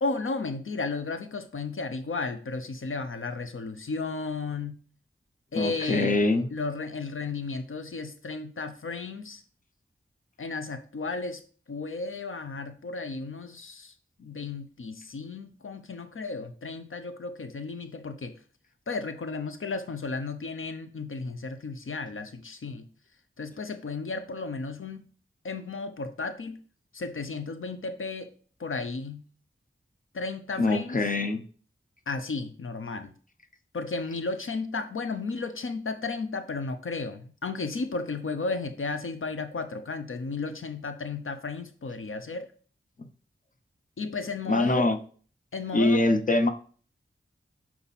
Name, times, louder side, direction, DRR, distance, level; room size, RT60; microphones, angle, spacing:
voice 1, 0.0-4.8 5.5-6.2 6.5-9.4 10.4-11.4 11.7-18.3 18.9-22.9 23.4-25.0 25.4-26.6 26.9-28.3 28.6-29.2 30.1-31.1 32.1-33.1 33.7-42.5 44.0-44.9 45.5-46.0, left 3 dB, 75° left, 0.6 m, -34 dB
voice 2, 5.5-6.5 30.6-31.4 43.0-43.1 44.5-45.0 45.7-46.5, left 2 dB, 40° left, 0.8 m, -24 dB
7.1 x 4.5 x 4.1 m
wide cardioid pair, 75°, 21 cm